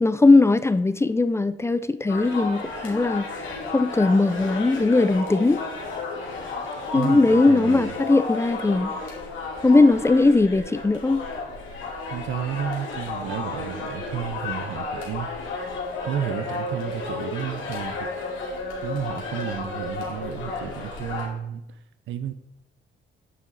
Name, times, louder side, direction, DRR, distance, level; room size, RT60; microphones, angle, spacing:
voice 1, 0.0-5.6 6.9-8.9 9.6-11.2, left 3 dB, 15° left, 0.4 m, -19 dB
sound 1, 2.1-21.3, left 3 dB, 80° left, 2.4 m, -32 dB
voice 2, 6.9-7.9 12.1-15.3 16.0-18.1 18.8-21.8 22.1-22.3, right 9 dB, 75° right, 0.6 m, -32 dB
9.3 x 6.2 x 4.1 m
cardioid pair, 90°, 20 cm